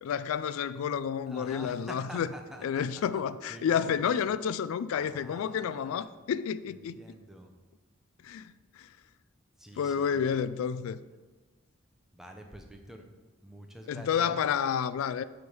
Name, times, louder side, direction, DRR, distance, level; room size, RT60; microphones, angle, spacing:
voice 1, 0.0-2.3 2.6-7.0 8.2-8.9 9.8-11.0 13.9-15.2, left 7 dB, 85° left, 0.3 m, -30 dB
voice 2, 1.3-3.2 3.5-4.2 4.9-6.1 6.7-7.5 9.6-10.5 12.1-13.0 13.4-14.5, equal, ahead, 0.6 m, -47 dB
8.9 x 3.3 x 5.5 m
head